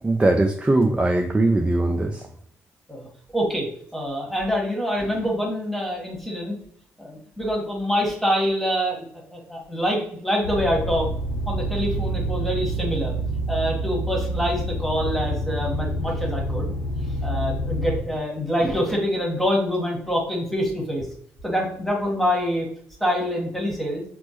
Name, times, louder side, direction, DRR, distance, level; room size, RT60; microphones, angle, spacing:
voice 1, 0.0-2.3, right 2 dB, 15° right, 5 dB, 0.4 m, -20 dB
voice 2, 2.9-6.6 7.0-11.1 11.5-13.1 13.5-16.7 17.2-21.1 21.4-22.7 23.0-24.0, equal, 5° left, -1 dB, 1.5 m, -25 dB
sound 1, 10.4-18.0, right 1 dB, 90° left, 0.6 m, -27 dB
4.3 x 2.0 x 3.0 m, 0.62 s
hypercardioid pair, 45°, 7 cm